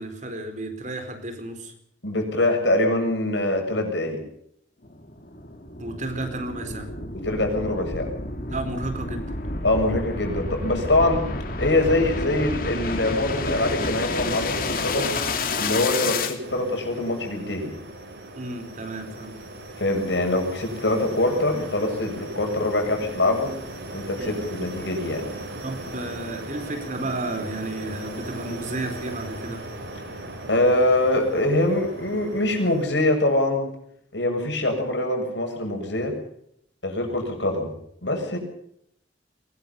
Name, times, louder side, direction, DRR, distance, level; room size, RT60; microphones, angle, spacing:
voice 1, 0.0-1.7 5.8-6.9 8.5-9.3 18.4-19.4 24.2-24.4 25.6-29.7, right 2 dB, 45° right, 7 dB, 4.4 m, -32 dB
voice 2, 2.0-4.2 7.1-8.1 9.6-11.3 11.6-15.1 15.5-17.7 19.8-23.5 23.9-25.3 30.5-33.7 34.1-36.2 36.8-37.7 38.0-38.4, left 1 dB, 80° left, 3 dB, 7.5 m, -24 dB
sound 1, 4.8-16.3, left 3 dB, 55° left, 3.0 m, -30 dB
sound 2, 16.4-32.9, right 1 dB, 80° right, 8.0 m, -38 dB
23.0 x 21.0 x 5.6 m, 0.70 s
head